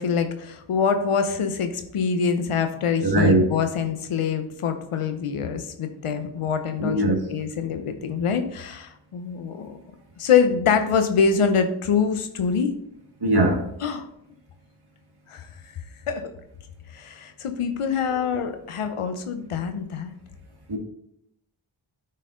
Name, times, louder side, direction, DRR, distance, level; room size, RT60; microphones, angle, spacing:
voice 1, 0.0-9.8 10.2-12.7 13.8-14.0 15.3-15.5 16.1-16.3 16.9-20.1, left 6 dB, 85° left, 0.9 m, -25 dB
voice 2, 3.0-3.5 6.8-7.3 13.2-13.7 20.7-20.8, right 1 dB, 50° right, 1.8 m, -20 dB
9.2 x 4.5 x 3.7 m
cardioid pair, 40°, 50 cm